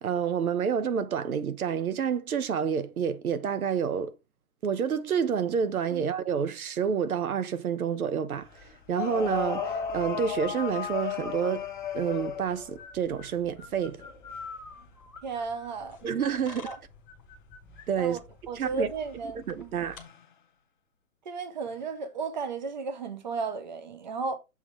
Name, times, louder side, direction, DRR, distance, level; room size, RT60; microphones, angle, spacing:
voice 1, 0.0-4.2 4.6-8.5 8.9-11.7 11.9-14.0 16.0-16.7 17.9-18.2 18.5-18.9 19.3-20.0, right 7 dB, 85° right, 1.0 m, -28 dB
sound 1, 8.3-8.4 8.9-12.7 14.0-14.4 16.0-16.2 20.0-20.3 21.7-21.8, left 7 dB, 35° left, 0.6 m, -34 dB
sound 2, 8.3-20.0, left 4 dB, 10° left, 1.0 m, -49 dB
voice 2, 15.2-16.0 16.6-16.8 18.0-18.2 18.5-19.8 21.2-24.4, right 4 dB, 35° right, 0.7 m, -34 dB
7.5 x 3.5 x 4.6 m
hypercardioid pair, 175°, 42 cm